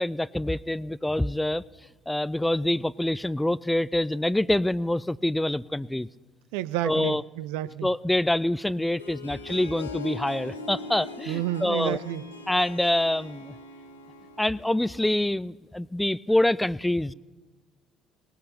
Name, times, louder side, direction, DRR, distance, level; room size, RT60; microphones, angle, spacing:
voice 1, 0.0-1.6 2.1-6.1 6.8-7.2 7.8-12.0 12.5-13.5 14.4-17.1, left 1 dB, 10° left, 21 dB, 0.3 m, -26 dB
voice 2, 6.5-7.9 11.3-12.2, right 13 dB, 70° right, 16 dB, 0.4 m, -30 dB
Harp, 8.7-15.2, left 3 dB, 90° left, 0.8 m, -41 dB
19.5 x 18.5 x 2.9 m, 1.3 s
figure-of-eight pair, 55°, 0 cm